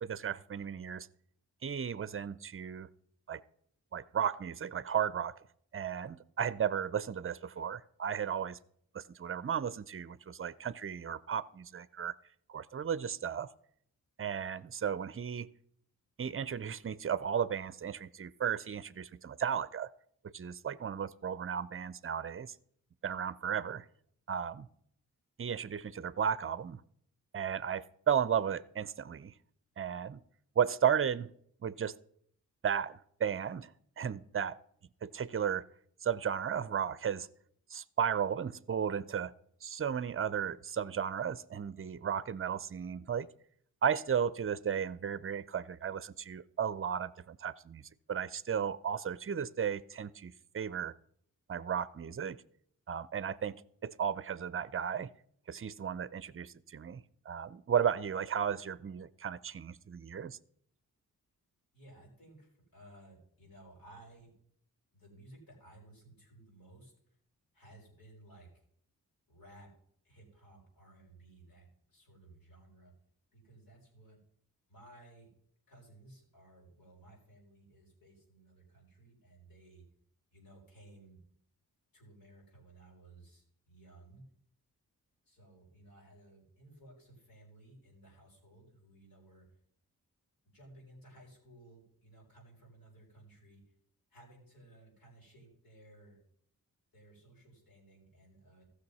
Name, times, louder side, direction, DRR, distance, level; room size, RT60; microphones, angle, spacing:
voice 1, 0.0-1.1 1.6-2.9 3.3-3.4 3.9-5.4 5.7-8.6 8.9-12.1 12.5-13.5 14.2-15.5 16.2-19.9 20.2-22.5 23.0-23.9 24.3-24.7 25.4-26.8 27.3-29.3 29.8-30.2 30.6-31.3 31.6-31.9 32.6-34.6 35.0-35.7 36.0-37.3 37.7-39.3 39.6-43.3 43.8-47.8 48.1-50.9 51.5-52.4 52.9-55.1 55.5-60.4, right 8 dB, 35° right, 18 dB, 0.6 m, -34 dB
voice 2, 61.7-64.3 64.9-66.9 67.5-68.6 69.3-69.7 70.0-72.9 73.3-74.2 74.7-75.3 75.7-79.8 80.3-81.2 81.9-84.2 85.2-89.4 90.4-93.6 94.1-96.2 96.9-98.6, right 1 dB, 70° left, -3 dB, 5.6 m, -58 dB
14.5 x 6.5 x 5.5 m, 0.66 s
cardioid pair, 50°, 36 cm